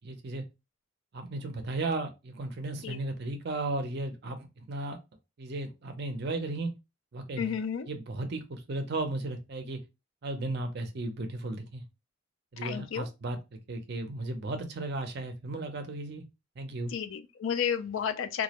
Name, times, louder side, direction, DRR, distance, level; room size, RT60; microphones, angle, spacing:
voice 1, 0.0-0.4 1.1-5.0 5.4-6.7 7.1-7.6 7.8-9.8 10.2-11.8 12.5-13.4 13.7-16.2 16.6-16.9, right 2 dB, 50° right, 0.5 m, -35 dB
voice 2, 7.4-7.9 12.6-13.1 16.9-18.4, left 7 dB, 65° left, 0.3 m, -32 dB
2.2 x 2.0 x 2.8 m
head